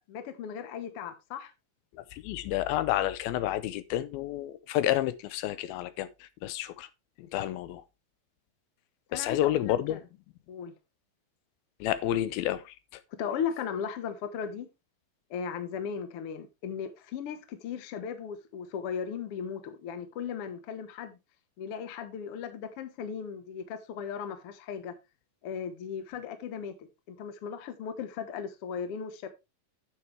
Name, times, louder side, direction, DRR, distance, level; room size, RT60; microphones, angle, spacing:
voice 1, 0.1-1.5 9.1-10.0 10.5-10.7 13.2-14.7 15.3-21.2 21.6-24.9 25.4-29.3, left 7 dB, 65° left, 1.4 m, -37 dB
voice 2, 1.9-6.9 7.2-7.8 9.1-10.0 11.8-13.0, left 13 dB, 85° left, 2.5 m, -30 dB
9.1 x 7.7 x 3.2 m
omnidirectional pair, 4.3 m